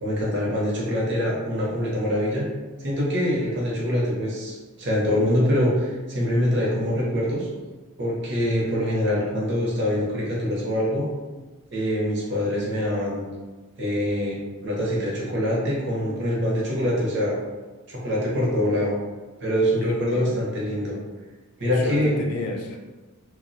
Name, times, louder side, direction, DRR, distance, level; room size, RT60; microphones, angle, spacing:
voice 1, 0.0-2.5 2.8-7.5 8.0-11.1 11.7-13.2 13.8-17.3 17.9-18.9 19.4-21.0 21.6-22.2, equal, 50° right, -5 dB, 0.7 m, -24 dB
voice 2, 19.9-20.3 21.6-22.8, left 2 dB, 90° left, 1 dB, 0.4 m, -31 dB
2.4 x 2.1 x 2.6 m, 1.3 s
head